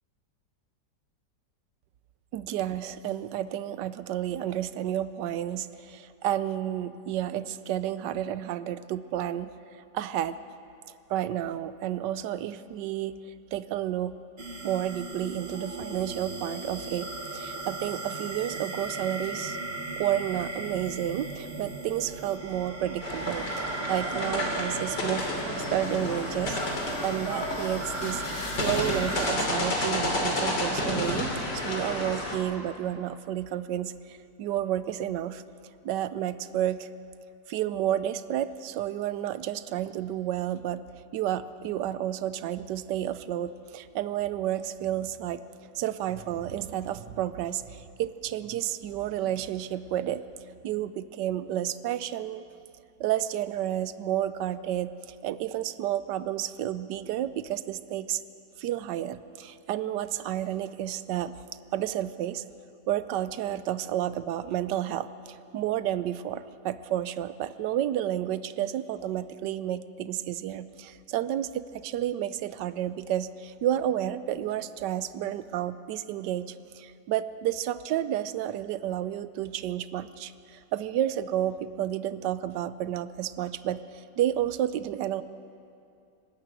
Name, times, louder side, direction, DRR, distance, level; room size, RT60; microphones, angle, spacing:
voice 1, 2.3-10.4 11.1-14.2 14.6-19.6 20.0-28.2 28.6-35.4 35.8-36.9 37.5-40.8 41.1-45.4 45.7-50.3 50.6-52.4 53.0-58.2 58.6-62.4 62.9-85.2, right 11 dB, 80° right, 14 dB, 1.3 m, -31 dB
sound 1, 14.4-29.4, right 3 dB, 35° right, 2.0 m, -37 dB
sound 2, 23.0-32.4, left 1 dB, 80° left, 3.7 m, -30 dB
sound 3, 27.7-29.0, left 3 dB, 45° left, 2.1 m, -40 dB
23.5 x 13.0 x 9.1 m, 2.6 s
omnidirectional pair, 1.9 m